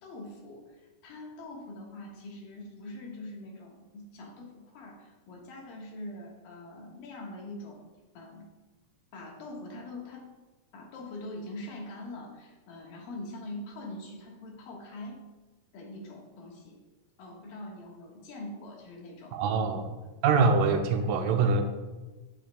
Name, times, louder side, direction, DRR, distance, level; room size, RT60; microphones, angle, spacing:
voice 1, 0.0-7.9 8.1-8.5 9.1-10.3 10.7-15.2 15.7-16.8 17.2-19.6 20.0-20.1, left 1 dB, 85° left, -1 dB, 3.1 m, -43 dB
voice 2, 19.3-19.9 20.2-21.6, right 4 dB, 80° right, 5 dB, 2.2 m, -24 dB
10.0 x 8.9 x 2.2 m, 1.2 s
omnidirectional pair, 3.9 m